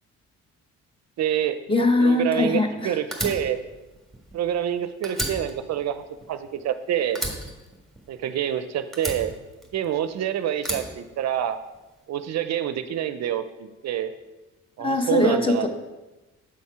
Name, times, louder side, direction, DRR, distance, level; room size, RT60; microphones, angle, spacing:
voice 1, 1.2-1.6 2.0-3.6 4.3-6.0 6.3-7.2 8.1-9.3 9.7-11.6 12.1-14.1 14.8-15.7, right 10 dB, 60° right, 11 dB, 0.5 m, -27 dB
voice 2, 1.7-3.0 14.8-15.7, left 2 dB, 15° left, 5 dB, 0.9 m, -21 dB
Fire, 3.1-4.7 5.0-6.8 7.1-8.5 8.9-10.1 10.6-11.8, right 1 dB, ahead, 1.5 m, -33 dB
7.4 x 4.3 x 4.7 m, 1.1 s
cardioid pair, 90°, 30 cm